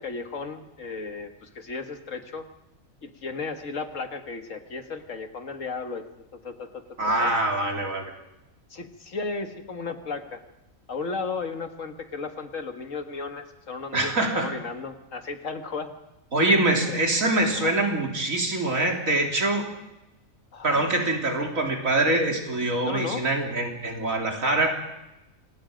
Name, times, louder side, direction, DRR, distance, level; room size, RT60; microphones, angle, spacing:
voice 1, 0.0-2.5 3.0-6.0 6.3-6.8 7.2-7.3 8.7-10.4 10.9-15.9 16.9-17.0 17.6-17.7 20.5-20.8 22.8-23.2, left 4 dB, 70° left, 7 dB, 1.9 m, -34 dB
voice 2, 7.0-8.0 13.9-14.5 16.3-19.7 20.6-24.7, right 2 dB, 80° right, 1 dB, 3.7 m, -24 dB
26.5 x 19.5 x 5.1 m, 0.93 s
omnidirectional pair, 1.4 m